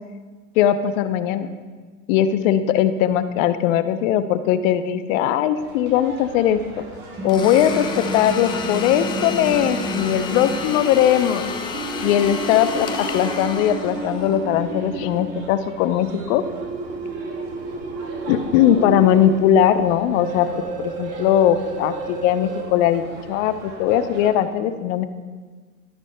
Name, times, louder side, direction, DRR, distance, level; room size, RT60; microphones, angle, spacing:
voice 1, 0.6-1.5 2.1-6.6 7.2-11.5 12.0-16.4 18.3-20.6 21.0-25.0, left 10 dB, 55° left, 11 dB, 0.7 m, -19 dB
sound 1, 5.6-24.3, right 2 dB, 50° right, 3.1 m, -40 dB
sound 2, 7.2-10.7 11.7-15.2 16.4-19.5 20.2-22.6, right 3 dB, 15° right, 0.8 m, -31 dB
Domestic sounds home sounds, 7.3-14.3, left 4 dB, 10° left, 0.3 m, -30 dB
12.0 x 12.0 x 2.2 m, 1.4 s
hypercardioid pair, 110°, 47 cm